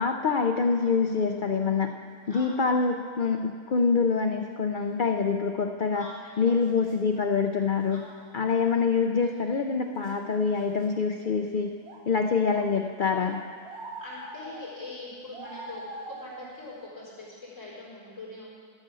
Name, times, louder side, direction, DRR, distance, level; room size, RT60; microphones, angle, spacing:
voice 1, 0.0-1.9 2.3-6.1 6.4-8.0 8.3-11.7 12.1-13.4, left 5 dB, 85° left, 5 dB, 0.4 m, -25 dB
voice 2, 2.3-2.6 3.7-3.9 4.8-4.9 5.9-6.6 7.9-8.2 14.0-18.5, left 2 dB, 55° left, -8 dB, 4.6 m, -43 dB
sound 1, 2.4-2.5 5.8-5.9 6.6-7.0 8.0-8.1 10.0-10.1 10.6-10.9 11.2-11.3 11.8-12.0 12.4-12.7 13.1-14.7 15.3-16.6, right 2 dB, 70° right, 1.6 m, -43 dB
13.0 x 8.8 x 6.2 m, 2.2 s
omnidirectional pair, 1.6 m